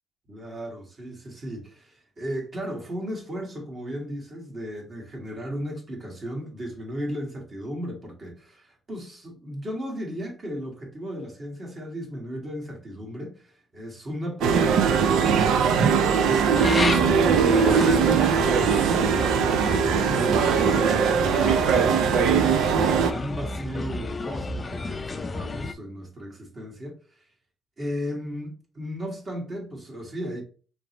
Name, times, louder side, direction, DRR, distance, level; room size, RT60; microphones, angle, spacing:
voice 1, 0.3-18.3 22.9-27.2 27.8-30.4, equal, 40° right, 1.9 m, -36 dB
sound 1, 14.4-23.1, right 6 dB, 85° right, 0.5 m, -20 dB
sound 2, 16.5-25.7, left 3 dB, 30° left, 0.4 m, -31 dB
5.2 x 3.3 x 3.0 m
cardioid pair, 90°, 0 cm